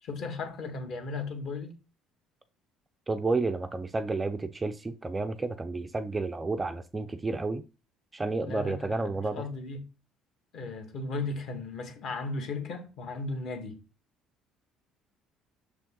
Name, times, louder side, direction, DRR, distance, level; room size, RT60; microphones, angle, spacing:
voice 1, 0.0-1.8 8.4-9.9 10.5-13.8, left 3 dB, 50° left, 1.6 m, -36 dB
voice 2, 3.1-7.6 8.1-9.5, right 3 dB, 15° right, 0.4 m, -31 dB
6.4 x 5.2 x 3.7 m
cardioid pair, 165°, 0 cm